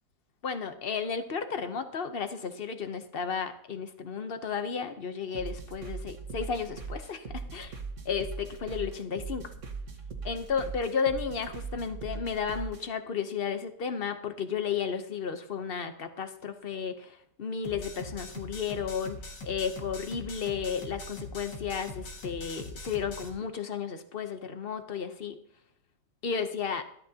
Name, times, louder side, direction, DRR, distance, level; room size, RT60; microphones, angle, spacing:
voice 1, 0.4-7.8 8.0-9.5 10.2-25.4 26.2-26.8, left 6 dB, 45° left, 8 dB, 0.8 m, -33 dB
sound 1, 5.3-12.8, right 4 dB, 45° right, 1.6 m, -40 dB
sound 2, 17.6-23.3, left 2 dB, 75° left, 2.3 m, -42 dB
13.5 x 12.5 x 2.8 m, 0.67 s
omnidirectional pair, 1.9 m